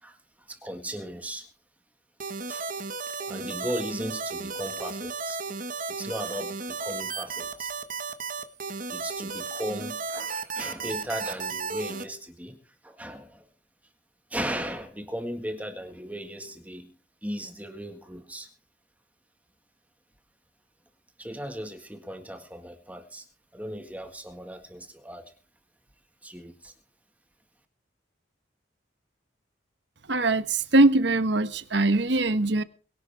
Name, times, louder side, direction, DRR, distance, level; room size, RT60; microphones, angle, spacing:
voice 1, 0.0-1.5 2.5-2.7 3.3-5.4 5.9-7.7 8.9-13.5 14.3-16.9 17.2-18.5 21.2-23.3 23.5-25.3 26.2-26.7, equal, 10° right, 1.7 m, -37 dB
sound 1, 2.2-12.0, right 4 dB, 40° right, 1.4 m, -34 dB
voice 2, 30.1-32.6, right 2 dB, 60° right, 1.2 m, -22 dB
22.5 x 11.0 x 3.5 m
head